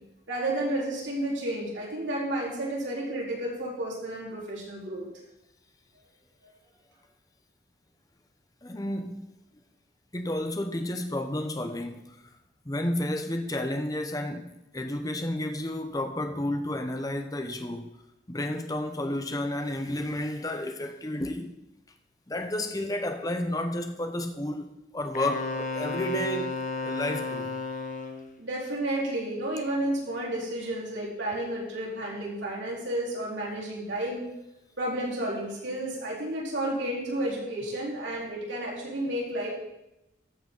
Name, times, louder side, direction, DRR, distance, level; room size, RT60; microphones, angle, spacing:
voice 1, 0.3-5.1 28.4-34.2 34.8-39.5, right 1 dB, 80° right, 4.0 m, -31 dB
voice 2, 8.6-9.3 10.1-12.2 12.6-18.0 18.3-21.5 22.3-27.5, left 1 dB, 20° left, 0.9 m, -31 dB
Wind instrument woodwind instrument, 25.2-28.3, left 3 dB, 45° left, 1.0 m, -33 dB
13.5 x 6.0 x 5.4 m
head